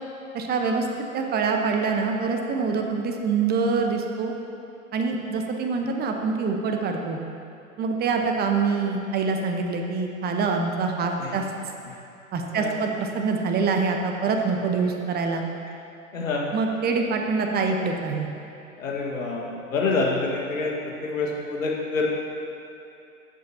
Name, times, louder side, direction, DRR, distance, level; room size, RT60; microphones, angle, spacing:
voice 1, 0.3-0.9 1.1-4.3 4.9-7.2 7.8-11.4 12.3-15.4 16.5-18.3, right 4 dB, 25° right, 3 dB, 1.0 m, -25 dB
voice 2, 12.5-12.9 16.1-16.5 18.8-22.1, left 3 dB, 75° left, -2 dB, 1.8 m, -27 dB
15.0 x 8.3 x 2.9 m, 2.8 s
figure-of-eight pair, 95°, 40 cm